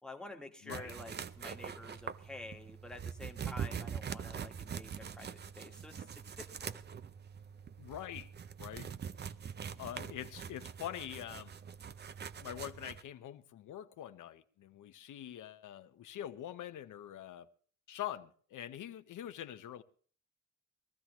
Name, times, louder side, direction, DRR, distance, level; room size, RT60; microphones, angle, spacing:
voice 1, 0.0-6.0 6.4-6.8, left 2 dB, ahead, 1.3 m, -49 dB
sound 1, 0.7-13.0, right 7 dB, 35° right, 0.6 m, -44 dB
voice 2, 7.8-8.3 8.6-8.9 9.8-11.5 12.4-17.5 17.9-19.8, left 11 dB, 75° left, 0.9 m, -44 dB
21.0 x 14.5 x 3.0 m
wide cardioid pair, 160°, 31 cm